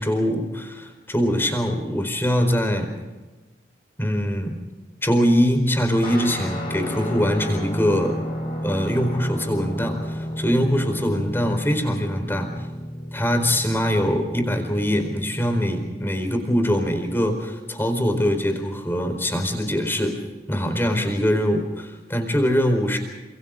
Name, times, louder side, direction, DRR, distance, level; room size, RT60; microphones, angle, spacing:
voice 1, 0.0-2.9 4.0-4.6 5.0-8.2 8.6-12.5 13.1-20.2 20.5-23.0, equal, 10° left, 5 dB, 4.5 m, -23 dB
Guitar, 6.0-15.8, equal, 25° left, 6.3 m, -32 dB
30.0 x 27.0 x 3.9 m, 1.2 s
head